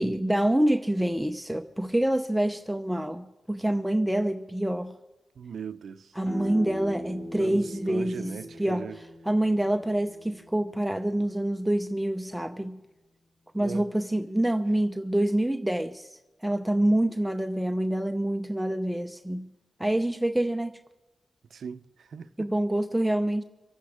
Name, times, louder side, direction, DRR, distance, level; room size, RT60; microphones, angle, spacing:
voice 1, 0.0-5.0 6.2-12.8 13.5-19.5 19.8-20.7 22.4-23.4, right 1 dB, 5° right, 0.7 m, -26 dB
voice 2, 5.4-6.1 7.4-9.0 13.6-13.9 21.5-22.5, right 7 dB, 80° right, 0.7 m, -39 dB
sound 1, 6.2-11.8, left 1 dB, 15° left, 4.6 m, -42 dB
25.0 x 8.6 x 5.0 m
wide cardioid pair, 90°, 0 cm